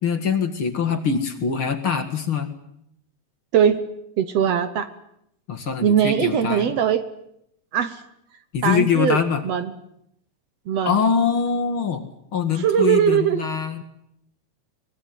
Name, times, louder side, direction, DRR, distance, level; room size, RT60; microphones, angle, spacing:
voice 1, 0.0-2.5 5.5-6.7 8.5-9.4 10.8-12.0 12.3-13.8, left 6 dB, 45° left, 6 dB, 2.5 m, -23 dB
voice 2, 3.5-3.9 4.2-4.9 5.8-7.0 7.7-8.0 8.6-9.2 9.4-9.7 10.7-11.0 12.6-13.4, right 8 dB, 65° right, 11 dB, 2.1 m, -20 dB
23.5 x 21.0 x 9.4 m, 0.77 s
omnidirectional pair, 3.4 m